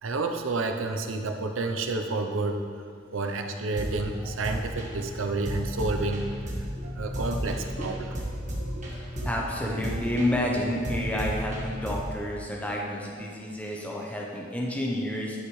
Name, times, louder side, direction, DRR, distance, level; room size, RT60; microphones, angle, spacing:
voice 1, 0.0-2.6 3.1-6.3 6.9-8.1, right 3 dB, 75° right, 5 dB, 0.7 m, -30 dB
sound 1, 3.8-12.1, equal, 40° right, 1.5 m, -34 dB
voice 2, 8.5-15.4, left 1 dB, 5° left, -3 dB, 0.8 m, -30 dB
11.0 x 6.4 x 3.2 m, 2.2 s
head